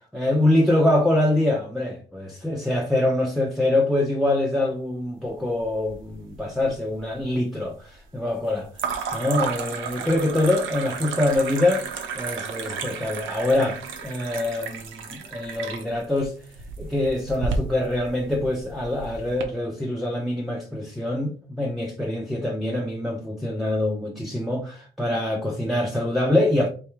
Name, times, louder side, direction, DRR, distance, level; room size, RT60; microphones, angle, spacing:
voice 1, 0.1-8.7 9.1-11.8 12.1-16.3 16.8-26.7, left 1 dB, ahead, 0.7 m, -24 dB
sound 1, 5.6-6.4 6.7-7.3 8.7-19.4, right 5 dB, 75° right, 0.9 m, -32 dB
3.5 x 2.6 x 4.4 m
cardioid pair, 90°, 20 cm